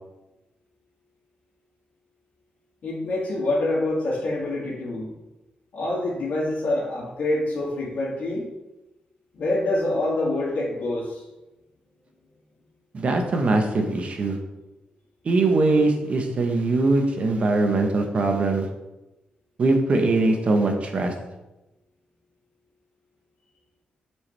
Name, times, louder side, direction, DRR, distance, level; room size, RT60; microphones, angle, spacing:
voice 1, 2.8-5.1 5.7-8.5 9.3-11.2, left 2 dB, 65° left, -7 dB, 2.2 m, -26 dB
voice 2, 12.9-14.4 15.2-18.7 19.6-21.1, right 2 dB, 45° right, 4 dB, 1.0 m, -21 dB
7.3 x 4.7 x 3.3 m, 1.0 s
cardioid pair, 115°, 3 cm